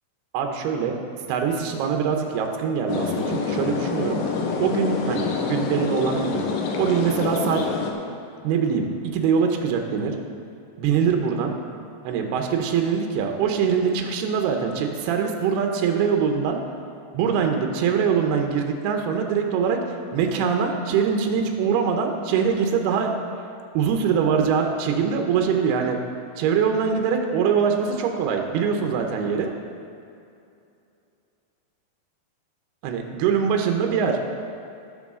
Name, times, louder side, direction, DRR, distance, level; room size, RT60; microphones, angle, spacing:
voice 1, 0.3-1.0 1.3-4.2 4.6-6.4 6.8-7.6 8.4-10.2 10.8-11.5 12.0-16.6 17.1-23.2 23.7-26.0 26.4-29.5 32.8-34.2, right 6 dB, 80° right, 3 dB, 2.8 m, -23 dB
sound 1, 2.9-7.9, left 4 dB, 75° left, 2.2 m, -26 dB
18.0 x 6.2 x 3.7 m, 2.5 s
omnidirectional pair, 4.6 m